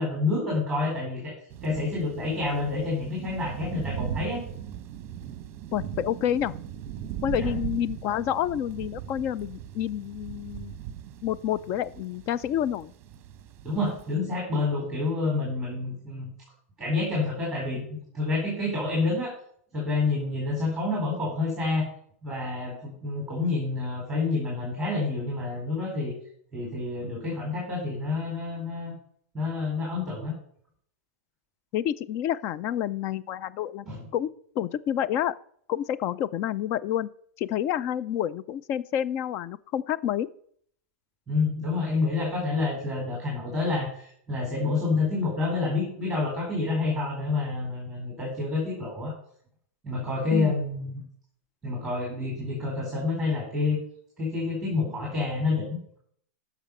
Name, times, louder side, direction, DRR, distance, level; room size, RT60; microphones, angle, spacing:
voice 1, 0.0-1.3 1.6-4.4 7.3-7.5 13.6-16.3 16.8-17.8 18.1-19.3 19.7-21.9 22.2-26.1 26.5-28.9 29.3-30.3 33.9-34.0 41.3-49.1 49.8-51.0 51.6-53.8 54.2-56.0, left 3 dB, 5° right, -3 dB, 4.3 m, -28 dB
sound 1, 1.5-14.1, right 10 dB, 30° right, 1.0 m, -38 dB
voice 2, 5.7-6.5 7.2-10.7 11.2-12.9 31.7-33.9 34.1-34.3 34.6-35.3 35.7-37.1 37.4-40.3 50.3-50.6, left 10 dB, 30° left, 17 dB, 0.4 m, -28 dB
14.0 x 6.1 x 5.5 m, 0.62 s
hypercardioid pair, 150°, 8 cm